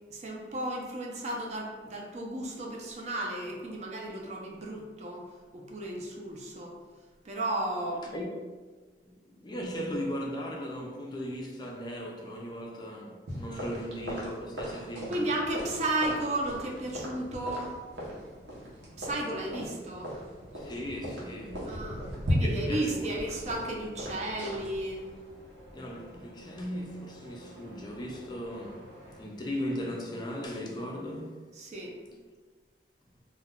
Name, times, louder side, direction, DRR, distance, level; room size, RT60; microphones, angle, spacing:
voice 1, 0.1-5.2 5.5-6.7 7.2-8.1 13.5-13.8 15.1-17.8 19.0-20.1 21.7-25.0 31.6-32.1, right 1 dB, 40° right, 0.4 m, -34 dB
voice 2, 9.0-15.2 19.6-19.8 20.5-23.1 25.7-28.9 29.2-31.4, equal, 25° left, 0.4 m, -38 dB
sound 1, 13.3-29.2, equal, 85° right, 0.8 m, -38 dB
2.2 x 2.1 x 3.5 m
head